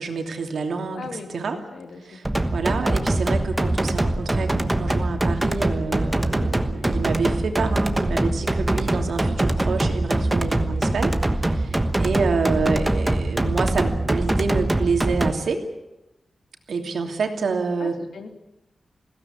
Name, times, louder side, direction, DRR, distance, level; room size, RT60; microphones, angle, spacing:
voice 1, 0.0-1.1 1.3-1.6 2.1-2.2 2.5-15.6 16.7-18.0, right 4 dB, 85° right, 4 dB, 2.9 m, -27 dB
voice 2, 0.9-2.2 12.5-12.7 17.8-18.3, left 4 dB, 85° left, 5 dB, 2.7 m, -39 dB
sound 1, 2.2-15.3, right 1 dB, 15° right, 1.2 m, -23 dB
21.5 x 16.5 x 9.8 m, 0.95 s
wide cardioid pair, 160°, 0 cm